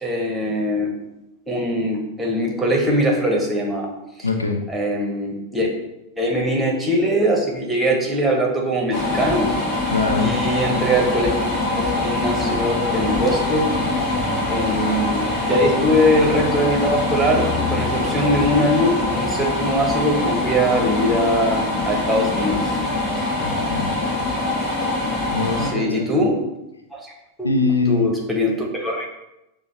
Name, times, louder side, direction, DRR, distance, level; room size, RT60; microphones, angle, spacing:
voice 1, 0.0-0.9 1.5-3.9 4.7-5.7 6.2-9.5 10.2-11.3 11.8-13.7 14.5-22.8 25.7-26.4 26.9-27.1 27.4-27.5 27.9-29.1, equal, 5° right, -1 dB, 1.0 m, -21 dB
voice 2, 4.2-4.6 9.9-10.3 23.4-23.9 25.3-26.2 27.4-28.1, left 3 dB, 80° left, 4 dB, 0.4 m, -22 dB
sound 1, 8.9-25.7, left 2 dB, 35° left, 1.3 m, -23 dB
6.0 x 2.1 x 3.0 m, 0.90 s
figure-of-eight pair, 90°, 0 cm